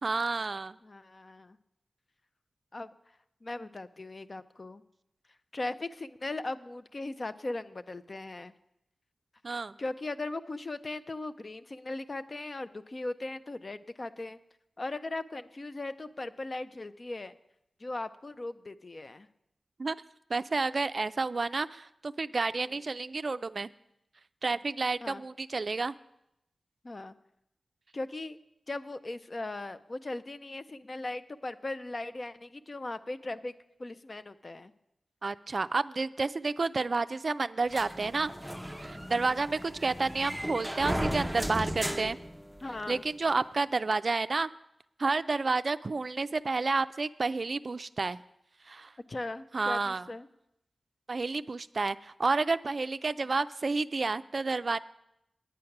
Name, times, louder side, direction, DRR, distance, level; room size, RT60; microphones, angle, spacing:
voice 1, 0.0-0.8 9.4-9.7 19.8-20.0 20.3-23.7 24.4-25.9 35.2-38.3 38.8-42.2 42.9-44.5 45.0-48.2 48.7-48.9 49.5-50.0 51.1-54.8, right 3 dB, 60° right, 13 dB, 0.3 m, -30 dB
voice 2, 0.8-1.6 2.7-2.9 3.4-4.8 5.5-8.5 9.5-14.4 14.8-17.4 17.8-19.3 25.0-25.2 26.8-27.1 27.9-28.4 28.7-33.5 33.8-34.7 39.2-39.4 42.6-43.0 49.1-50.3, left 2 dB, 45° left, 11 dB, 0.5 m, -38 dB
sound 1, 37.7-43.0, equal, ahead, 0.7 m, -36 dB
9.5 x 8.6 x 5.9 m, 0.82 s
cardioid pair, 50°, 0 cm